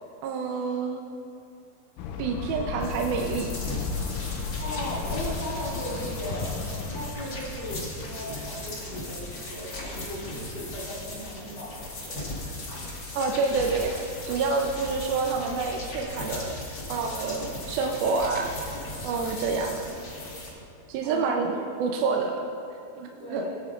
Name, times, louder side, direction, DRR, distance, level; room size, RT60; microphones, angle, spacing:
voice 1, 0.2-1.0 2.2-3.5 13.1-16.6 16.9-18.8 19.0-20.0 20.9-22.5 23.0-23.5, right 4 dB, 80° right, 1 dB, 2.4 m, -28 dB
sound 1, 2.0-7.1, left 5 dB, 85° left, 1.8 m, -34 dB
sound 2, 2.8-20.5, left 2 dB, 50° left, 1.2 m, -37 dB
voice 2, 4.6-11.7 12.0-12.2 21.0-21.6 23.2-23.6, equal, 65° left, -7 dB, 4.6 m, -37 dB
20.5 x 8.6 x 2.4 m, 2.6 s
omnidirectional pair, 4.4 m